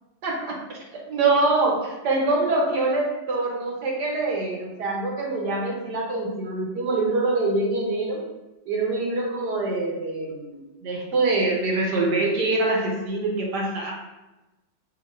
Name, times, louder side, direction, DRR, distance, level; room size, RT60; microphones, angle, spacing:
voice 1, 0.2-0.6 1.1-8.2 8.7-13.9, right 2 dB, 70° right, -1 dB, 1.4 m, -24 dB
6.3 x 2.7 x 2.5 m, 1.0 s
omnidirectional pair, 2.0 m